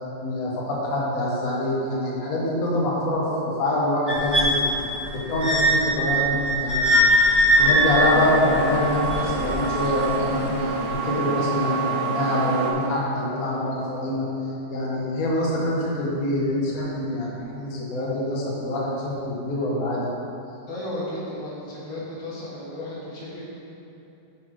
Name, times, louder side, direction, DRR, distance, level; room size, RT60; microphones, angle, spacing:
voice 1, 0.2-4.6 5.1-7.0 7.6-14.2 14.7-20.1, left 1 dB, 55° left, -5 dB, 1.5 m, -25 dB
sound 1, 4.1-10.1 10.9-11.0, equal, 10° right, 1.2 m, -21 dB
sound 2, 7.5-12.7, right 4 dB, 55° right, 1.4 m, -27 dB
voice 2, 20.7-23.6, left 1 dB, 85° left, -8 dB, 2.5 m, -34 dB
10.0 x 4.0 x 4.7 m, 2.9 s
omnidirectional pair, 2.0 m